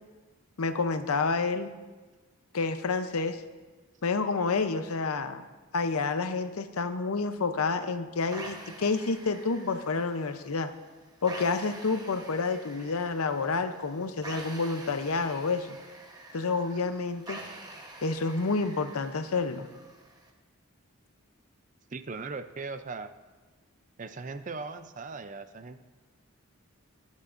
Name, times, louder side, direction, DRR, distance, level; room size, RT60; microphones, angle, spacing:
voice 1, 0.6-1.7 2.5-3.4 4.0-5.4 5.7-10.7 11.2-15.8 16.3-17.4 18.0-19.7, left 4 dB, 85° left, 9 dB, 0.7 m, -29 dB
sound 1, 8.3-20.3, right 2 dB, 15° right, 1.0 m, -47 dB
voice 2, 21.9-23.1 24.0-25.8, right 4 dB, 35° right, 11 dB, 0.4 m, -39 dB
20.0 x 8.4 x 2.6 m, 1.3 s
head